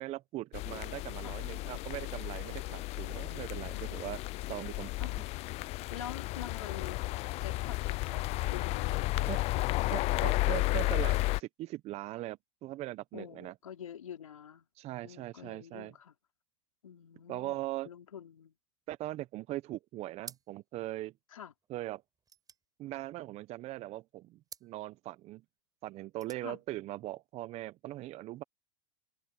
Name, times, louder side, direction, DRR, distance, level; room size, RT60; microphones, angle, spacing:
voice 1, 0.0-4.2 4.5-5.1 9.2-9.4 9.9-13.5 14.8-15.9 17.3-17.9 18.9-21.1 21.7-22.0 22.8-25.4 25.8-28.4, right 16 dB, 40° right, 0.8 m, -40 dB
sound 1, 0.5-11.4, left 20 dB, 40° left, 0.4 m, -33 dB
voice 2, 5.9-7.0 7.4-9.6 13.1-14.7 15.0-16.1 16.8-18.5 21.3-21.5 26.4-26.6, left 9 dB, 85° left, 4.0 m, -47 dB
sound 2, 20.2-20.8 21.1-21.2 21.4-23.6 24.4-24.8 25.9-26.5, right 6 dB, 20° right, 6.8 m, -52 dB
hypercardioid pair, 100°, 17 cm